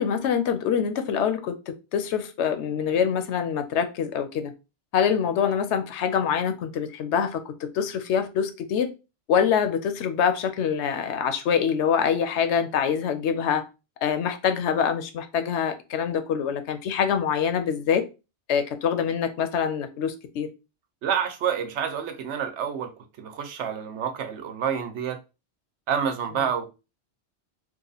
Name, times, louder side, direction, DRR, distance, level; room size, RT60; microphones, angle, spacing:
voice 1, 0.0-4.5 4.9-8.9 9.3-13.6 14.0-18.0 18.5-20.5, left 7 dB, 80° left, 0.9 m, -25 dB
voice 2, 21.0-22.9 23.2-25.2 25.9-26.7, right 8 dB, 85° right, 1.0 m, -28 dB
2.9 x 2.5 x 3.9 m
omnidirectional pair, 1.2 m